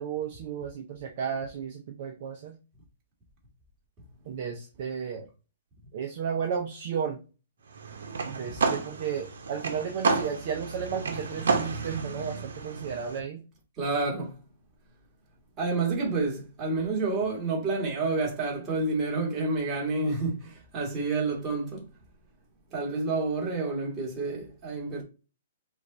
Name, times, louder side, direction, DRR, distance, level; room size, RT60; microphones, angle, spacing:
voice 1, 0.0-2.6 4.3-5.3 5.9-7.2 8.2-13.4, right 7 dB, 50° right, 0.7 m, -33 dB
sound 1, 7.7-13.2, right 4 dB, 80° right, 1.0 m, -31 dB
voice 2, 13.8-14.3 15.6-21.9 22.7-25.0, right 3 dB, 20° right, 1.8 m, -29 dB
5.0 x 2.6 x 3.9 m
hypercardioid pair, 155°, 0 cm